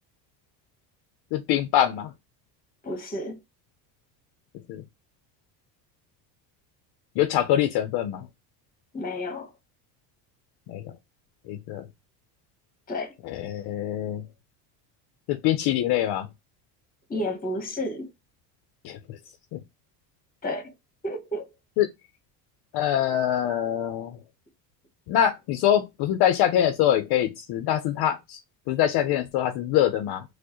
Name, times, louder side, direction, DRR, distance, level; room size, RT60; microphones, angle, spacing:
voice 1, 1.3-2.1 4.7-4.8 7.2-8.3 10.7-10.9 11.5-11.8 13.2-14.2 15.3-16.3 18.8-19.0 19.5-19.6 21.8-21.9 22.7-24.2 25.1-28.4 28.7-30.2, left 11 dB, 55° left, 0.6 m, -24 dB
voice 2, 2.8-3.4 8.9-9.5 12.9-13.1 17.1-18.1 20.4-20.7 21.0-21.5, left 1 dB, 20° left, 1.1 m, -31 dB
4.4 x 2.1 x 2.9 m
supercardioid pair, 105°, 47 cm